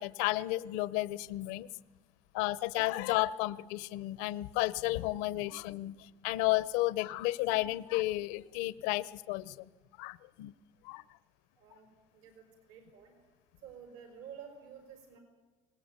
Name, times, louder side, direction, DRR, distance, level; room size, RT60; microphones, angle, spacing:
voice 1, 0.0-1.7 2.3-9.7 10.0-10.5 10.8-11.0, left 18 dB, 90° left, 17 dB, 0.8 m, -32 dB
voice 2, 11.6-13.1 13.6-15.2, right 8 dB, 80° right, 5 dB, 5.2 m, -51 dB
25.5 x 19.5 x 9.1 m, 1.3 s
cardioid pair, 145°, 14 cm